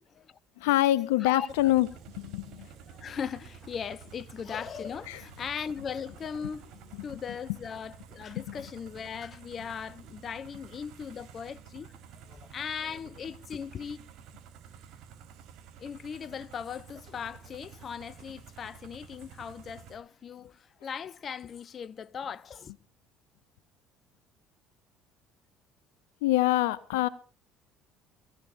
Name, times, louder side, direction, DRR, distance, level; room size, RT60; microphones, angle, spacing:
voice 1, 0.0-0.4 1.2-1.5 2.6-14.0 15.8-22.7, left 7 dB, 45° left, 0.8 m, -39 dB
voice 2, 0.6-1.9 2.1-2.7 5.1-5.2 8.4-8.6 26.2-27.1, left 15 dB, 80° left, 0.6 m, -25 dB
sound 1, 1.5-19.9, right 8 dB, 65° right, 4.2 m, -51 dB
22.5 x 15.5 x 2.6 m
hypercardioid pair, 65°, 0 cm